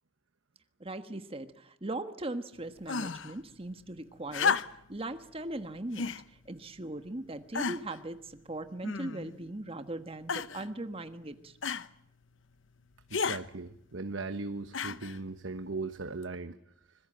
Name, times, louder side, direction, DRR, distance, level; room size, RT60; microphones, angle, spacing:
voice 1, 0.8-4.6 4.9-11.5, right 2 dB, 30° right, 9 dB, 1.4 m, -39 dB
sound 1, 2.9-3.3 4.3-5.0 5.9-6.2 7.0-7.1 7.5-8.0 8.8-9.4 10.3-10.7 11.6-11.9 13.1-13.4 14.7-15.2 16.2-16.3, left 5 dB, 75° left, 1.0 m, -32 dB
voice 2, 13.1-16.6, right 3 dB, 75° right, 9 dB, 1.2 m, -38 dB
25.5 x 21.5 x 9.0 m, 0.74 s
head